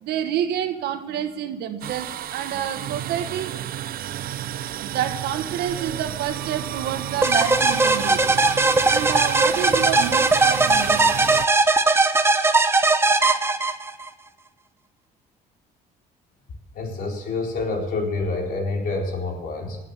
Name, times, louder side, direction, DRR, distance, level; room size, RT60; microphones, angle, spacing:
voice 1, 0.0-3.5 4.8-8.4 8.8-11.0, right 10 dB, 75° right, 8 dB, 1.6 m, -28 dB
sound 1, 1.8-11.5, right 12 dB, 60° right, 0.7 m, -31 dB
sound 2, 7.2-14.1, right 3 dB, 15° right, 0.9 m, -19 dB
voice 2, 16.7-19.8, left 3 dB, 60° left, 0 dB, 4.3 m, -27 dB
17.5 x 8.6 x 6.9 m, 1.1 s
cardioid pair, 110°, 17 cm